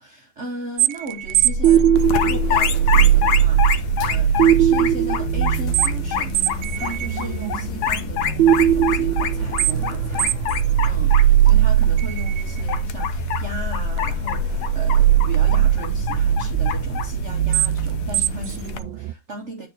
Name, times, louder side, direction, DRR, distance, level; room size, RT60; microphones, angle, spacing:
voice 1, 0.0-10.3 10.8-19.7, right 2 dB, 45° right, 1.0 m, -36 dB
sound 1, 0.8-19.1, right 10 dB, 80° right, 1.3 m, -20 dB
sound 2, 2.0-18.8, left 7 dB, 65° left, 1.1 m, -27 dB
9.1 x 4.4 x 3.4 m
omnidirectional pair, 2.1 m